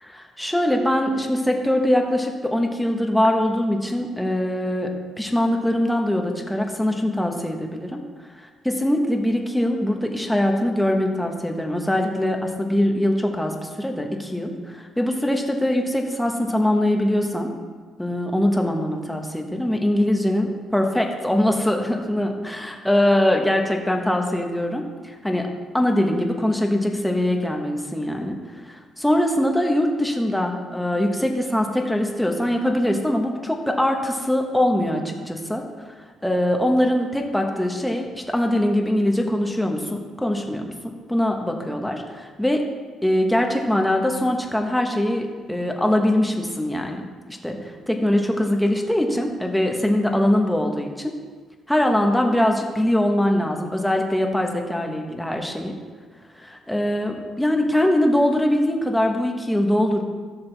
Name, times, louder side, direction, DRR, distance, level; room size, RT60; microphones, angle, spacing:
voice 1, 0.0-4.9 5.2-8.0 8.4-17.5 18.0-25.5 25.7-28.4 28.6-35.6 36.2-40.7 41.1-42.6 43.0-47.0 47.4-47.6 47.9-51.1 51.7-55.7 56.4-60.0, left 1 dB, 5° left, 2 dB, 1.4 m, -22 dB
15.5 x 6.7 x 3.5 m, 1.5 s
cardioid pair, 90°, 0 cm